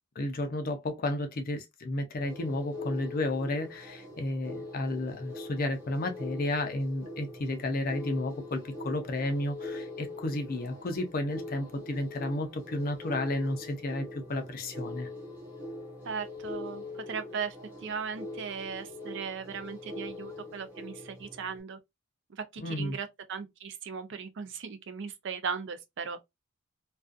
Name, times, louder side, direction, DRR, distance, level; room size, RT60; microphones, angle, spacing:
voice 1, 0.2-15.1 22.6-23.0, left 1 dB, 45° left, 0.5 m, -32 dB
sound 1, 2.2-21.6, left 2 dB, 10° right, 0.8 m, -42 dB
voice 2, 16.0-17.6 17.8-21.8 22.3-26.2, right 6 dB, 55° right, 0.5 m, -37 dB
2.4 x 2.3 x 2.4 m
head